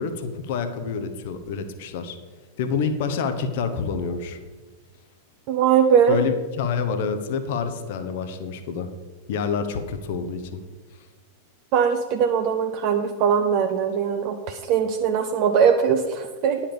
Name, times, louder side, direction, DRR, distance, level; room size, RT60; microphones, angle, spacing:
voice 1, 0.0-2.2 2.6-4.4 6.1-8.9 9.3-10.6, left 5 dB, 50° left, 8 dB, 0.9 m, -27 dB
voice 2, 5.5-6.2 11.7-16.6, right 7 dB, 45° right, 5 dB, 0.7 m, -21 dB
10.0 x 5.6 x 6.8 m, 1.3 s
figure-of-eight pair, 90°, 0 cm